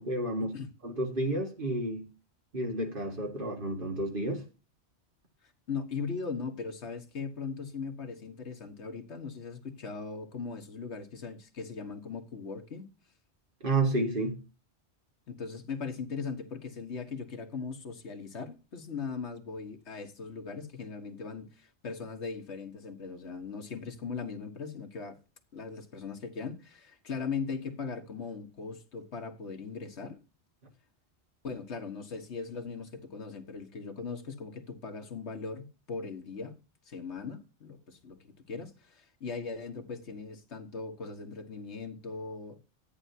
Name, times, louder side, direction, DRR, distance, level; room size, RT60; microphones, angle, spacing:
voice 1, 0.0-0.6 0.8-2.1 2.5-4.4 13.6-14.4, right 2 dB, 50° right, 2.3 m, -30 dB
voice 2, 5.7-12.9 15.3-25.2 25.5-30.2 31.4-36.6 36.9-38.2 38.5-42.6, left 5 dB, 75° left, 1.7 m, -39 dB
13.5 x 9.3 x 2.8 m
omnidirectional pair, 1.1 m